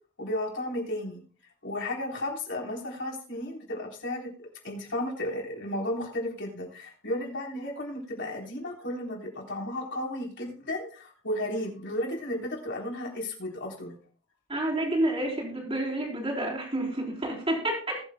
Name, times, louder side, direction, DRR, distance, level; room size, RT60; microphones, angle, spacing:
voice 1, 0.2-1.2 1.6-4.3 4.6-14.0, left 1 dB, 60° left, -1 dB, 3.7 m, -33 dB
voice 2, 14.5-18.0, right 1 dB, 25° right, -2 dB, 3.8 m, -29 dB
20.5 x 7.8 x 2.2 m, 0.40 s
head